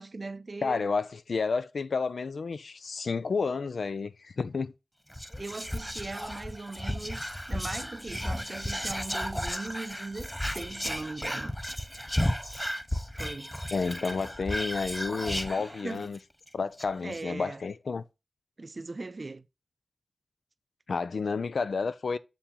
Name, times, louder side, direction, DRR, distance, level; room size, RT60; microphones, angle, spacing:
voice 1, 0.0-0.9 5.4-11.6 13.1-13.5 15.8-16.1 17.0-17.6 18.6-19.5, right 3 dB, 45° right, 0.5 m, -39 dB
voice 2, 0.6-4.7 13.7-16.2 16.5-18.0 20.9-22.2, left 4 dB, 75° left, 0.4 m, -31 dB
Whispering, 5.1-16.2 16.5-16.6 16.8-17.2, equal, 5° left, 0.6 m, -34 dB
7.0 x 4.4 x 3.7 m
cardioid pair, 55°, 0 cm